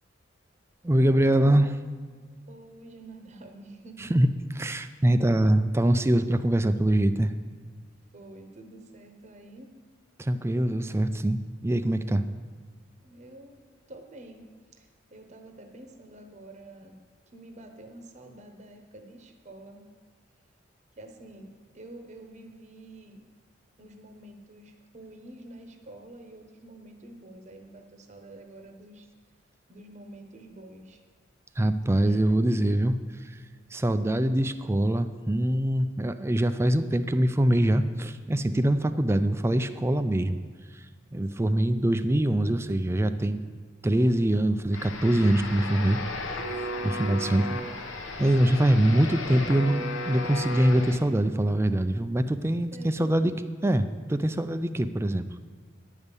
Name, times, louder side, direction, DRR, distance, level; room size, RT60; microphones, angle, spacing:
voice 1, 0.8-1.7 4.1-4.3 4.6-7.3 10.2-12.2 31.6-33.0 33.2-33.4 33.7-40.4 40.7-40.8 41.1-43.4 43.8-46.0 46.8-47.5 48.2-53.3 53.6-55.2, right 1 dB, 15° right, 11 dB, 0.3 m, -24 dB
voice 2, 1.4-2.2 2.5-4.2 4.6-4.7 8.1-9.7 13.0-13.6 13.9-17.0 17.3-19.9 21.0-23.2 23.8-29.1 29.7-31.0 32.0-32.2 41.4-41.6 46.8-47.7 52.7-53.1, right 1 dB, 35° right, 4 dB, 0.9 m, -48 dB
sound 1, 44.7-51.0, left 2 dB, 80° left, 1.0 m, -35 dB
10.0 x 5.3 x 8.1 m, 1.5 s
head